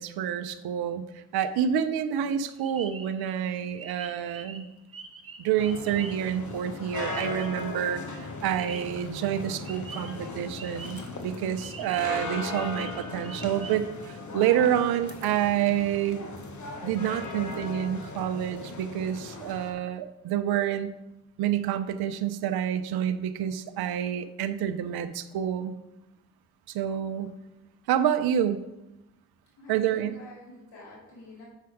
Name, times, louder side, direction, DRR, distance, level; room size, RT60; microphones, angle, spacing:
voice 1, 0.0-4.6 5.4-16.2 16.8-21.0 21.4-25.7 26.7-27.4 27.9-28.6 29.7-30.2, right 10 dB, 75° right, 11 dB, 0.6 m, -28 dB
sound 1, 2.3-7.7 7.9-9.0 9.6-11.2 11.6-13.8, right 4 dB, 35° right, 1.1 m, -45 dB
sound 2, 5.6-19.7, left 3 dB, 50° left, 1.4 m, -38 dB
voice 2, 29.6-31.5, left 1 dB, 80° left, -4 dB, 3.0 m, -47 dB
7.4 x 5.7 x 4.8 m, 0.94 s
supercardioid pair, 50°, 38 cm